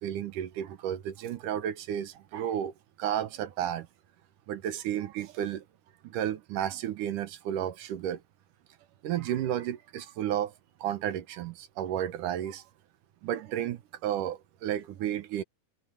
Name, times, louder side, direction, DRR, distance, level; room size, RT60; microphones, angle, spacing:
voice 1, 0.0-3.9 4.5-5.6 6.0-8.2 9.0-10.5 10.8-12.6 13.2-15.4, right 10 dB, 70° right, 2.4 m, -32 dB
omnidirectional pair, 4.3 m